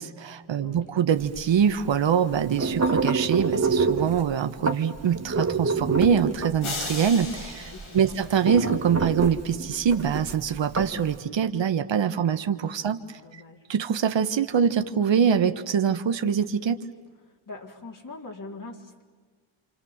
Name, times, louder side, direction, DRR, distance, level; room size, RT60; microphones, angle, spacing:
voice 1, 0.0-13.0 13.7-16.9, right 7 dB, 65° right, 9 dB, 1.4 m, -24 dB
voice 2, 0.6-0.9 7.6-8.2 13.2-13.7 17.5-19.0, left 3 dB, 40° left, 2 dB, 3.9 m, -42 dB
sound 1, 1.2-11.2, right 4 dB, 30° right, 1.9 m, -28 dB
sound 2, 6.6-9.0, left 3 dB, 80° left, 6.6 m, -36 dB
28.0 x 26.5 x 7.3 m, 1.4 s
cardioid pair, 70°, 48 cm